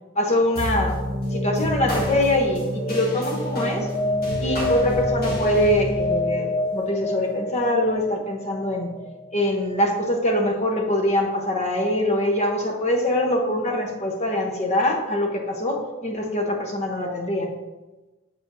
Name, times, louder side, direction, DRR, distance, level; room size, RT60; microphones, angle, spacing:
voice 1, 0.1-1.0 1.3-3.9 4.4-8.9 9.3-17.5, left 1 dB, 35° left, 2 dB, 0.9 m, -23 dB
sound 1, 0.6-9.3, left 1 dB, 50° left, 1.6 m, -26 dB
7.3 x 5.0 x 2.6 m, 1.1 s
head